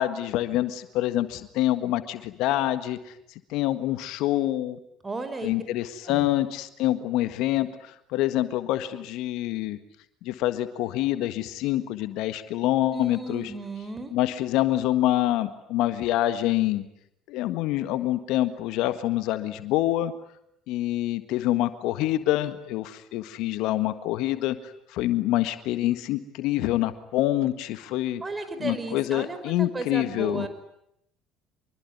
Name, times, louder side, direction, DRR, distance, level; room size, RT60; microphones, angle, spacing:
voice 1, 0.0-3.1 3.5-4.8 5.4-9.8 10.2-13.5 14.1-16.8 17.3-20.1 20.7-28.2 28.6-30.5, left 14 dB, 70° left, 11 dB, 1.6 m, -26 dB
voice 2, 5.0-5.5 6.0-6.3 12.9-14.1 28.2-30.5, right 3 dB, 25° right, 10 dB, 5.4 m, -34 dB
26.0 x 23.5 x 9.6 m, 0.77 s
hypercardioid pair, 65°, 0 cm